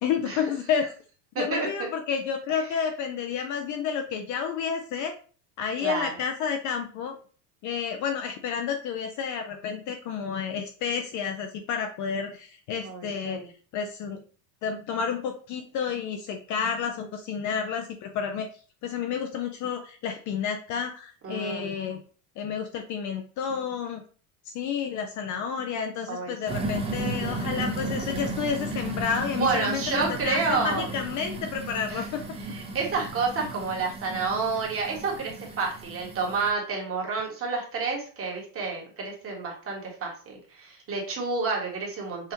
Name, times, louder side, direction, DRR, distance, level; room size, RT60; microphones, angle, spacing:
voice 1, 0.0-0.9 1.4-5.1 5.6-7.2 7.6-13.4 13.7-14.2 14.6-18.5 18.8-22.0 22.4-24.0 24.5-32.2, left 7 dB, 40° left, 5 dB, 0.5 m, -30 dB
voice 2, 1.3-1.9 2.5-2.7 5.8-6.1 12.8-13.5 21.2-21.8 26.1-26.7 29.3-30.9 31.9-32.0 32.5-42.3, right 4 dB, 30° right, -1 dB, 1.5 m, -30 dB
sound 1, 26.5-36.5, right 2 dB, 10° right, 0.7 m, -34 dB
5.6 x 2.4 x 2.9 m, 0.40 s
supercardioid pair, 125°, 48 cm